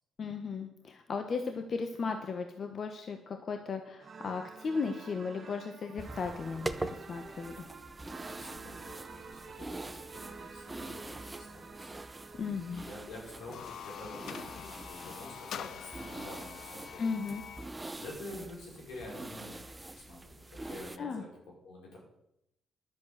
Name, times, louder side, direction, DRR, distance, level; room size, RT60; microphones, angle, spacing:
voice 1, 0.2-7.7 12.4-12.8 17.0-17.4 21.0-21.2, left 5 dB, 50° left, 6 dB, 1.1 m, -36 dB
sound 1, 4.0-14.4, right 4 dB, 40° right, 1.5 m, -50 dB
sound 2, 6.0-21.0, right 2 dB, 15° right, 0.7 m, -44 dB
voice 2, 8.2-12.0 12.7-17.1 18.0-19.6 19.9-22.0, left 1 dB, 90° left, -3 dB, 5.8 m, -48 dB
sound 3, 13.3-17.8, left 9 dB, 70° left, 0.5 m, -45 dB
11.0 x 7.2 x 7.8 m, 0.82 s
cardioid pair, 90°, 0 cm